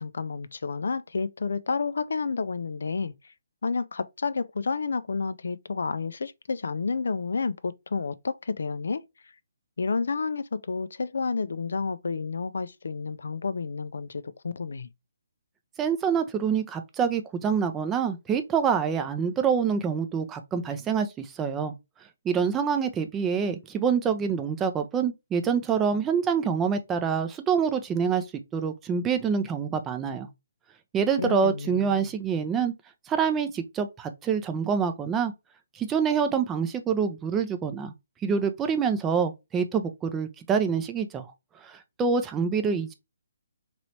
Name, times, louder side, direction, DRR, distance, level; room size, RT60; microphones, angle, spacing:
voice 1, 0.0-3.1 3.6-9.0 9.8-14.9 31.2-32.1, left 4 dB, 70° left, 0.3 m, -30 dB
voice 2, 15.8-21.7 22.2-28.2 28.5-30.3 30.9-32.7 33.1-35.3 35.8-37.9 38.2-41.3 41.6-42.9, right 6 dB, 15° right, 0.4 m, -26 dB
3.1 x 2.9 x 2.7 m
figure-of-eight pair, 145°, 0 cm